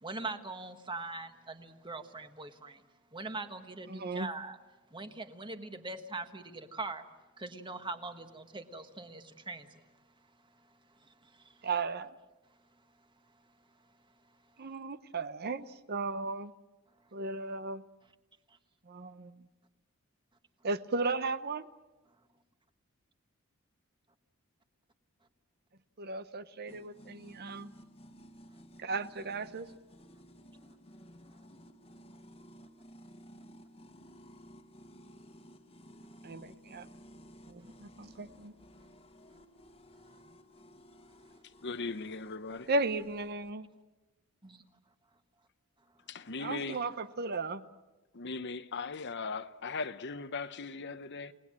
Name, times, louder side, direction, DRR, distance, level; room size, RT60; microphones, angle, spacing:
voice 1, 0.0-2.8 3.1-4.6 4.9-7.0 7.4-9.8 11.0-11.6 44.4-44.6, right 3 dB, 20° right, 1.4 m, -42 dB
voice 2, 3.9-4.3 11.6-12.1 14.6-16.5 17.1-17.8 18.9-19.5 20.6-21.6 26.0-27.7 28.8-29.7 36.2-36.9 37.5-38.5 42.7-43.7 46.4-47.6, right 3 dB, 50° right, 0.8 m, -35 dB
sound 1, 26.7-43.5, equal, 30° left, 1.5 m, -55 dB
voice 3, 41.6-42.7 46.1-46.8 48.1-51.3, left 4 dB, 55° left, 0.9 m, -38 dB
30.0 x 19.0 x 7.5 m
head